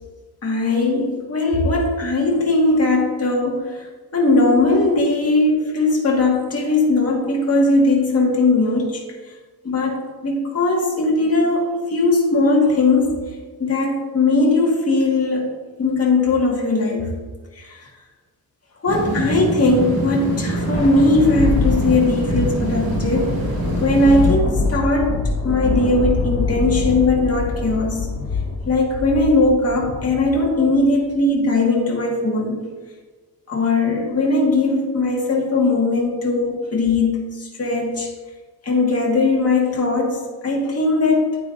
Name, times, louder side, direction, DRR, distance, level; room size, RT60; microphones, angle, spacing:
voice 1, 0.4-3.9 4.1-9.0 9.6-13.2 13.6-17.2 17.6-17.9 18.8-23.3 23.8-28.1 28.7-32.6 33.5-38.1 38.6-41.4, left 2 dB, 40° left, -2 dB, 1.7 m, -19 dB
sound 1, 18.9-24.3, right 2 dB, 70° right, 2.1 m, -25 dB
Thunder, 20.2-30.9, left 3 dB, 75° left, 1.6 m, -24 dB
9.4 x 9.0 x 2.6 m, 1.3 s
wide cardioid pair, 125°, 37 cm